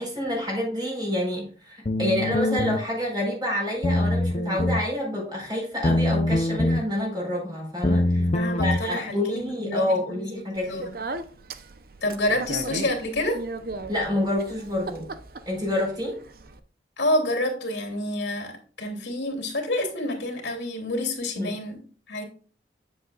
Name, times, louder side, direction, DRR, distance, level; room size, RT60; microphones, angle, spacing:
voice 1, 0.0-8.3 8.6-10.9 13.9-15.1 15.5-16.2 21.4-21.6, left 1 dB, 25° right, -1 dB, 4.5 m, -28 dB
sound 1, 1.9-2.8 3.8-4.8 5.8-6.8 7.8-8.8, left 1 dB, 35° left, 0.6 m, -23 dB
voice 2, 8.1-10.2 10.7-10.9 12.0-13.4 17.0-21.8 22.1-22.2, left 1 dB, 85° left, 2 dB, 2.9 m, -28 dB
Speech, 10.6-16.6, right 2 dB, 55° right, 0.7 m, -37 dB
9.1 x 7.7 x 2.4 m, 0.40 s
head